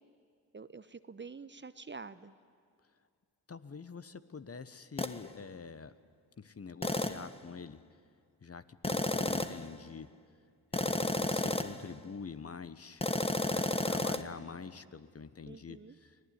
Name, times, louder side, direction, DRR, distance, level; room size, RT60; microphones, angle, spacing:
voice 1, 0.5-2.4 15.5-16.0, right 4 dB, 25° right, 13 dB, 1.0 m, -47 dB
voice 2, 3.5-5.9 6.4-7.8 8.4-10.1 10.7-13.0 13.5-16.1, left 5 dB, 35° left, 13 dB, 1.2 m, -46 dB
sound 1, 5.0-5.2 6.8-7.3 8.8-9.7 10.7-11.9 13.0-14.2, left 2 dB, 15° left, 1.2 m, -32 dB
24.5 x 18.0 x 9.8 m, 2.2 s
hypercardioid pair, 45°, 41 cm